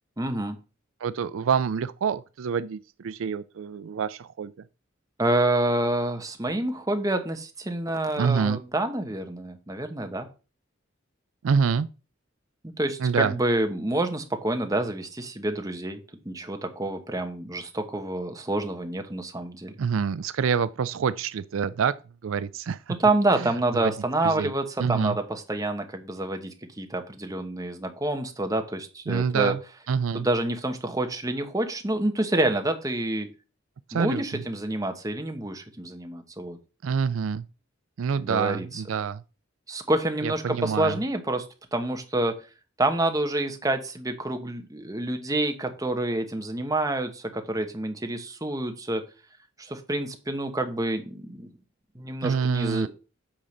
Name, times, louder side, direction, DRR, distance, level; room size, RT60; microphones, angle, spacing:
voice 1, 0.2-0.6 5.2-10.3 12.8-16.0 16.2-19.8 23.0-29.5 30.1-33.3 33.9-36.6 38.2-38.8 39.7-41.4 41.7-42.3 42.8-49.0 49.6-51.5 51.9-52.9, right 2 dB, 15° right, 1.2 m, -28 dB
voice 2, 1.0-4.5 8.2-8.6 11.4-11.9 13.0-13.4 19.8-21.9 22.2-22.9 23.4-23.5 23.8-23.9 24.2-24.5 24.8-25.2 29.1-29.6 29.9-30.3 33.9-34.4 36.8-37.5 38.0-39.2 40.2-41.0 52.2-52.9, right 6 dB, 75° right, 0.4 m, -26 dB
8.8 x 3.8 x 6.5 m
head